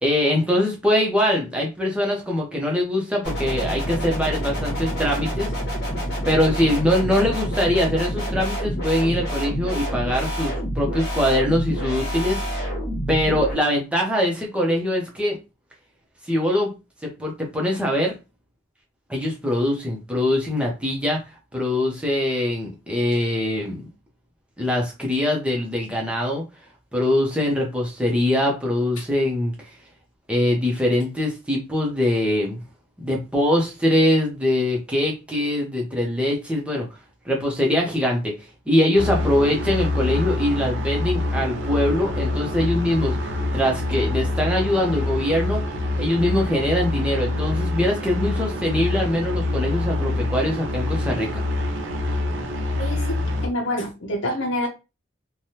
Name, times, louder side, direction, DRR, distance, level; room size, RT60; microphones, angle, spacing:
voice 1, 0.0-5.5 6.2-12.7 13.1-15.4 16.3-16.7 17.0-18.1 19.1-21.2 21.5-23.8 24.6-26.4 26.9-29.5 30.3-32.6 33.0-36.9 37.2-38.3 38.7-45.6 46.0-51.4, left 1 dB, 5° right, -1 dB, 0.7 m, -22 dB
sound 1, 3.2-13.5, equal, 55° left, 1.3 m, -27 dB
sound 2, 38.9-53.5, left 2 dB, 75° right, 0.7 m, -26 dB
voice 2, 52.8-53.2 53.4-54.7, left 1 dB, 75° left, -1 dB, 0.7 m, -26 dB
3.3 x 2.2 x 2.8 m, 0.28 s
head